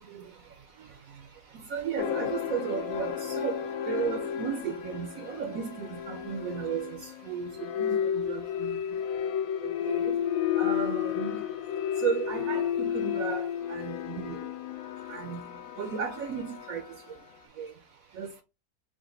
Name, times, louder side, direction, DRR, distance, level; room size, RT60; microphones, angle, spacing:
voice 1, 1.7-3.6 3.9-7.5 7.8-8.8 9.8-10.1 10.6-11.4 12.0-14.4 15.1-15.4 15.8-16.8 17.6-17.7 18.2-18.3, right 7 dB, 70° right, 0.9 m, -34 dB
sound 1, 2.0-17.3, left 9 dB, 70° left, 0.9 m, -32 dB
4.9 x 2.1 x 3.8 m
omnidirectional pair, 1.7 m